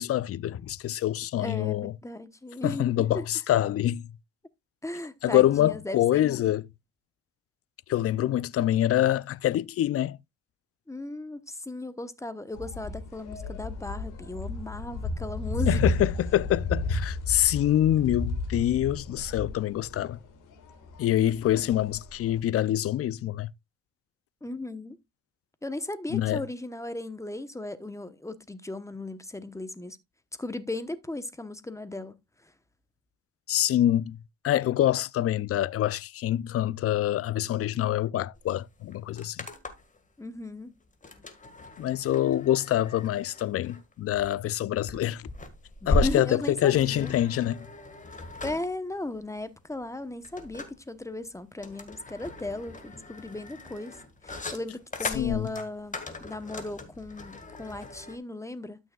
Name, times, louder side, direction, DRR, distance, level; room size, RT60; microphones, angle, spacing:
voice 1, 0.0-1.9 2.6-4.1 5.2-6.7 7.9-10.2 15.7-20.2 21.0-23.5 26.1-26.4 33.5-34.2 34.4-39.4 41.8-45.2 45.9-47.7 55.1-55.5, left 12 dB, 50° left, 0.4 m, -25 dB
voice 2, 1.4-3.2 4.8-6.6 10.9-15.8 24.4-25.0 25.6-30.0 30.4-32.5 40.2-40.8 45.8-47.2 48.4-54.0 54.2-58.8, left 2 dB, 10° left, 0.9 m, -36 dB
sound 1, 12.5-22.4, left 2 dB, 80° left, 1.9 m, -33 dB
sound 2, 38.3-38.4 38.7-40.0 41.0-58.2, left 1 dB, 25° left, 1.7 m, -36 dB
12.5 x 6.3 x 2.3 m
cardioid pair, 90°, 30 cm